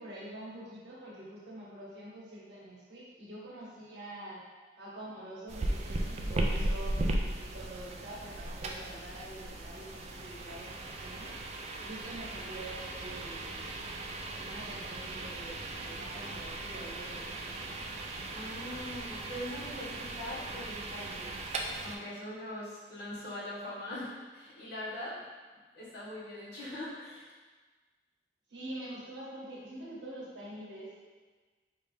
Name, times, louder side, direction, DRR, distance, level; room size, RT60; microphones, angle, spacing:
voice 1, 0.0-4.4 4.8-6.9 7.2-11.3 11.7-13.7 14.4-17.8 28.5-30.9, right 1 dB, 70° right, -7 dB, 1.4 m, -46 dB
sound 1, 5.5-22.0, right 1 dB, 35° right, 0.4 m, -37 dB
voice 2, 18.3-21.4 21.8-25.2 25.7-27.3, left 1 dB, 65° left, -9 dB, 1.5 m, -42 dB
5.0 x 2.8 x 3.3 m, 1.4 s
head